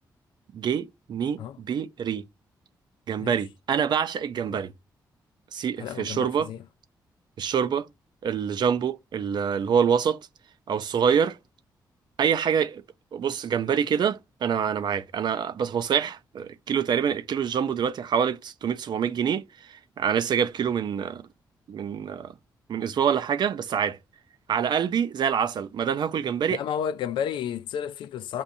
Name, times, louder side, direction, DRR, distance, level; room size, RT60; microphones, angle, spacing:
voice 1, 0.5-2.2 3.1-4.7 5.5-6.5 7.4-7.9 8.2-10.2 10.7-11.4 12.2-12.8 13.1-21.2 21.7-22.3 22.7-24.0 24.5-26.6, right 7 dB, 65° right, 0.6 m, -26 dB
voice 2, 5.8-6.6 26.5-28.4, left 9 dB, 85° left, 0.4 m, -32 dB
6.9 x 2.5 x 2.7 m
cardioid pair, 65°, 8 cm